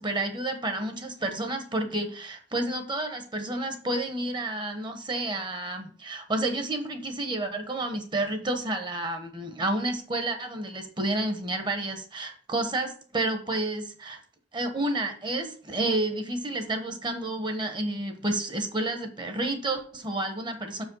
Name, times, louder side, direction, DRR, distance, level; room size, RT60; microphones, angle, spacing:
voice 1, 0.0-14.2 14.5-20.8, right 2 dB, 25° right, 6 dB, 1.1 m, -30 dB
6.2 x 5.0 x 5.4 m, 0.42 s
head